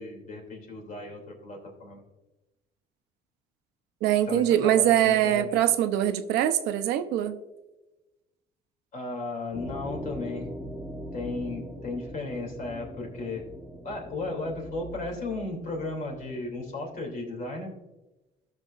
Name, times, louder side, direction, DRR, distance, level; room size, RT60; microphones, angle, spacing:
voice 1, 0.0-2.0 4.3-5.6 8.9-10.5 11.1-13.4 13.8-17.7, left 3 dB, 50° left, 1 dB, 2.8 m, -35 dB
voice 2, 4.0-7.4, right 11 dB, 90° right, 9 dB, 0.7 m, -23 dB
sound 1, 9.5-17.7, equal, 5° left, 1.8 m, -42 dB
16.0 x 6.2 x 2.5 m, 1.1 s
cardioid pair, 110°, 17 cm